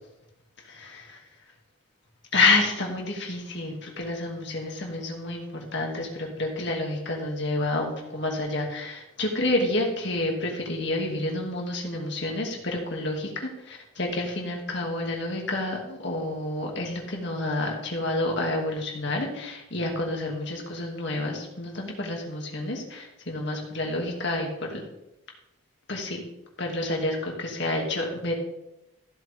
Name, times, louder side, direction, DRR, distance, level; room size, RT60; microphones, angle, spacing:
voice 1, 2.3-24.8 25.9-26.2 26.6-28.3, left 2 dB, 55° left, 0 dB, 2.4 m, -29 dB
15.0 x 7.6 x 3.6 m, 0.91 s
head